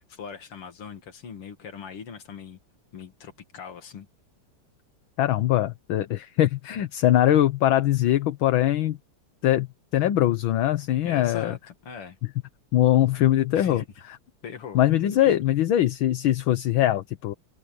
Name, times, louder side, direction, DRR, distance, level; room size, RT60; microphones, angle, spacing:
voice 1, 0.1-2.6 2.9-4.1 11.0-12.2 13.5-13.9 14.4-14.8 15.2-15.3, left 6 dB, 90° left, 3.2 m, -40 dB
voice 2, 5.2-9.0 9.4-9.7 9.9-11.5 12.7-13.8 14.7-17.3, left 12 dB, 70° left, 1.7 m, -22 dB
omnidirectional pair, 2.4 m